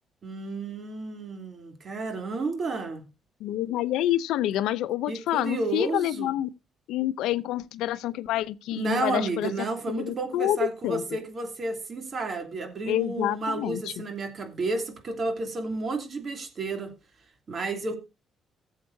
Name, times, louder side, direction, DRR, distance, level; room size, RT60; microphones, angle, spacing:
voice 1, 0.2-3.1 5.1-6.3 8.7-16.9 17.5-18.0, right 3 dB, 45° right, 2.8 m, -31 dB
voice 2, 3.4-6.5 6.9-9.5 9.9-11.0 12.9-14.0, left 13 dB, 90° left, 0.6 m, -28 dB
16.5 x 7.4 x 2.7 m
cardioid pair, 90°, 0 cm